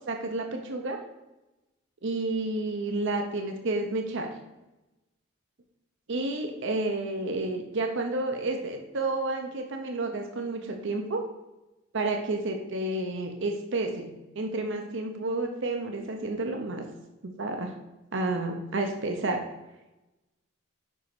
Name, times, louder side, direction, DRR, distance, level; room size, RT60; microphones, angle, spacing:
voice 1, 0.1-1.0 2.0-4.3 6.1-11.2 11.9-14.1 14.4-16.8 17.2-17.7 18.1-19.4, right 2 dB, 65° right, 4 dB, 0.8 m, -30 dB
5.4 x 5.2 x 6.0 m, 1.0 s
head